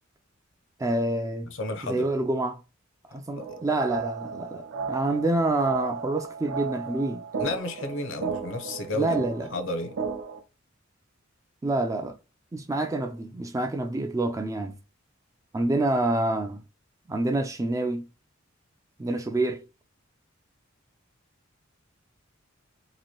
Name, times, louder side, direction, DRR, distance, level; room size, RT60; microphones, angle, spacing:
voice 1, 0.8-1.5 1.8-2.6 3.1-7.2 8.9-9.5 11.6-12.2 12.5-14.7 15.5-16.6 17.1-18.0 19.0-19.6, right 2 dB, 15° right, 0.3 m, -27 dB
voice 2, 1.5-2.1 3.4-3.6 7.4-9.2 9.5-10.0, left 2 dB, 70° left, 0.6 m, -32 dB
sound 1, 3.4-10.4, right 5 dB, 65° right, 0.6 m, -34 dB
3.0 x 2.5 x 2.8 m
head